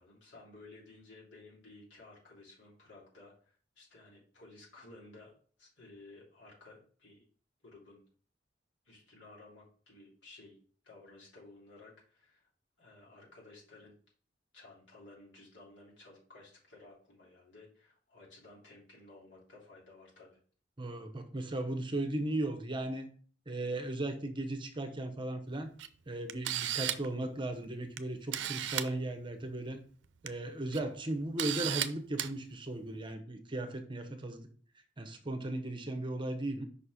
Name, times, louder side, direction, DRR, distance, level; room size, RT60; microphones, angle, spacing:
voice 1, 0.0-5.3 5.6-7.2 7.6-8.0 8.8-10.6 10.8-12.5 12.8-13.9 14.5-20.4, left 2 dB, 85° left, 3.2 m, -55 dB
voice 2, 20.8-23.1 23.5-25.7 26.1-29.8 30.2-34.5 35.0-36.6, right 1 dB, 25° right, 0.8 m, -36 dB
Camera, 25.8-25.9 26.3-27.1 28.0-28.1 28.3-28.9 30.0-30.3 30.7-30.8 31.4-31.9 32.2-32.3, right 11 dB, 80° right, 0.5 m, -34 dB
5.6 x 4.3 x 4.8 m
head